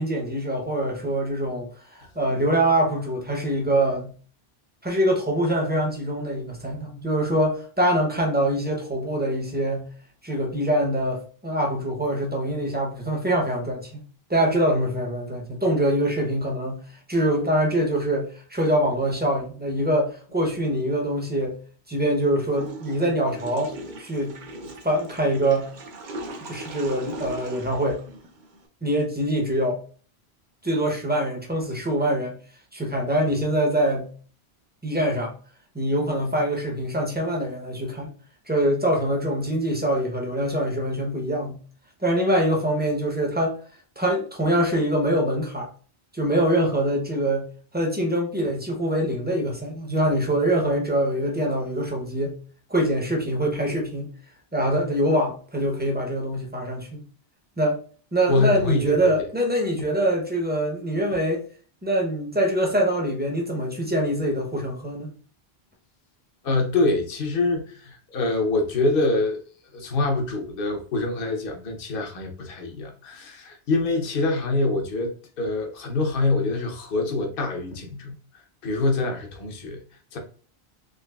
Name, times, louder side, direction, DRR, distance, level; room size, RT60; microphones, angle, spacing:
voice 1, 0.0-4.1 4.8-9.9 10.2-14.0 14.3-21.6 21.9-23.7 24.0-24.4 24.8-25.7 26.4-28.1 28.8-29.8 30.6-32.4 32.7-34.1 34.8-35.3 35.7-38.1 38.5-41.6 42.0-43.6 44.0-45.7 46.1-47.5 47.7-52.4 52.7-54.1 54.5-57.0 57.6-57.8 58.1-61.4 61.8-65.1, right 1 dB, 10° right, 1 dB, 0.6 m, -24 dB
Water / Toilet flush, 22.5-28.7, right 2 dB, 55° right, 0.7 m, -39 dB
voice 2, 58.3-59.3 66.4-69.4 69.7-79.8 80.1-80.2, left 2 dB, 60° left, 2 dB, 1.0 m, -25 dB
3.8 x 2.9 x 2.3 m, 0.42 s
omnidirectional pair, 1.1 m